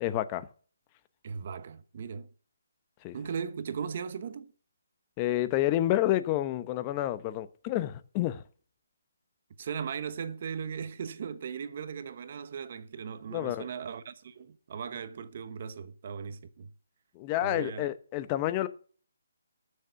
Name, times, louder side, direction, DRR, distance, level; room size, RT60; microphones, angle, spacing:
voice 1, 0.0-0.5 3.0-3.1 5.2-8.4 13.3-13.7 17.2-18.7, left 14 dB, 25° left, 0.8 m, -29 dB
voice 2, 1.2-2.3 3.1-4.5 9.6-16.7 17.4-17.9, right 6 dB, 45° right, 1.0 m, -38 dB
13.5 x 6.6 x 5.8 m
hypercardioid pair, 155°, 0 cm